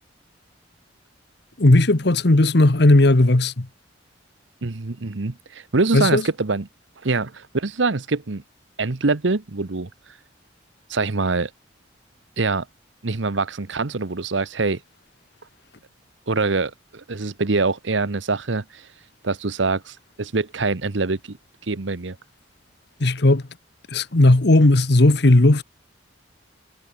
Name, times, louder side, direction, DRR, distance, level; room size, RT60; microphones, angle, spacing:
voice 1, 1.6-3.7 5.9-6.2 23.0-23.4 23.9-25.6, left 2 dB, 60° left, 1.2 m, -15 dB
voice 2, 4.6-6.7 7.0-8.4 8.8-9.9 10.9-11.5 12.4-12.7 13.0-14.8 16.3-18.9 19.2-21.4 21.6-22.2, right 3 dB, 75° right, 1.0 m, -24 dB
head